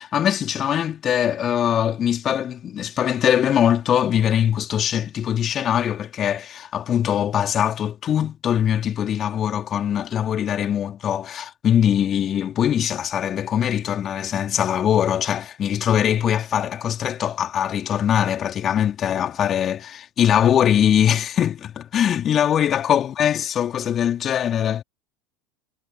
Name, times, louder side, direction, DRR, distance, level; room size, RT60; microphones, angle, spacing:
voice 1, 0.0-24.8, left 9 dB, 35° left, 2.7 m, -22 dB
figure-of-eight pair, 75°, 0 cm